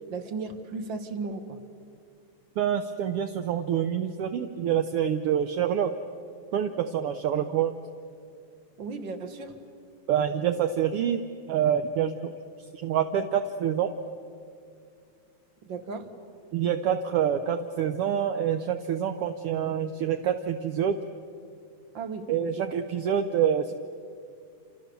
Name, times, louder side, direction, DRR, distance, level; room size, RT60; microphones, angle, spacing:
voice 1, 0.1-1.6 8.8-9.6 15.6-16.1 21.9-22.7, right 4 dB, 45° right, 8 dB, 2.0 m, -35 dB
voice 2, 2.6-5.9 6.5-7.7 10.1-11.2 11.5-12.3 12.8-13.9 16.5-21.0 22.3-23.7, right 9 dB, 65° right, 7 dB, 1.5 m, -26 dB
29.0 x 28.0 x 6.9 m, 2.4 s
omnidirectional pair, 3.3 m